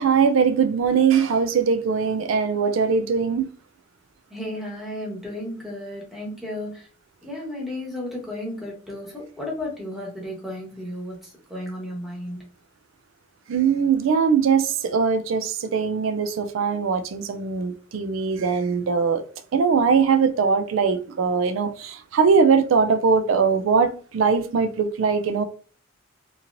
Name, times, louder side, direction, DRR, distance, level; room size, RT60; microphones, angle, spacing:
voice 1, 0.0-3.5 13.5-19.2 19.5-25.4, right 5 dB, 80° right, 0.4 m, -21 dB
voice 2, 4.3-6.9 7.2-11.1 11.5-12.4, left 1 dB, ahead, 1.0 m, -33 dB
2.9 x 2.8 x 2.5 m
head